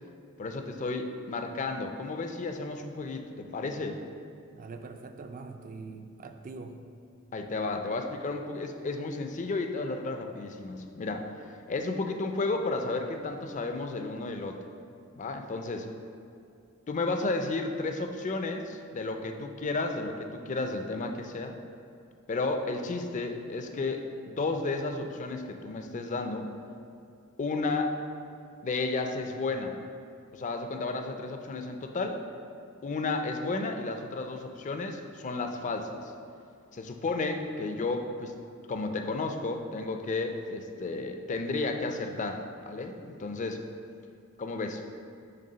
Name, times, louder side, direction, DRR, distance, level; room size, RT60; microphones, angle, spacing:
voice 1, 0.4-4.0 7.3-14.6 15.2-15.9 16.9-21.6 22.3-26.5 27.4-28.0 28.6-29.8 30.3-32.2 32.8-36.1 36.7-38.3 38.7-43.6 44.4-44.8, left 3 dB, 35° left, 5 dB, 0.4 m, -32 dB
voice 2, 4.5-6.8, right 3 dB, 40° right, 7 dB, 0.4 m, -43 dB
6.6 x 3.4 x 5.5 m, 2.5 s
head